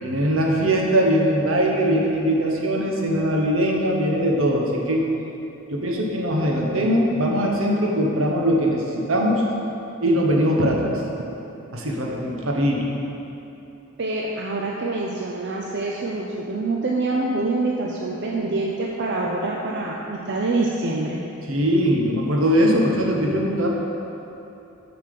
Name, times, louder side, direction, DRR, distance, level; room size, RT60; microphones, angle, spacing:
voice 1, 0.0-5.0 5.7-9.4 10.0-10.9 11.7-12.8 21.5-23.7, equal, 80° right, -1 dB, 1.3 m, -21 dB
voice 2, 14.0-21.2, right 2 dB, 60° right, -2 dB, 0.7 m, -25 dB
7.0 x 5.9 x 6.8 m, 2.9 s
head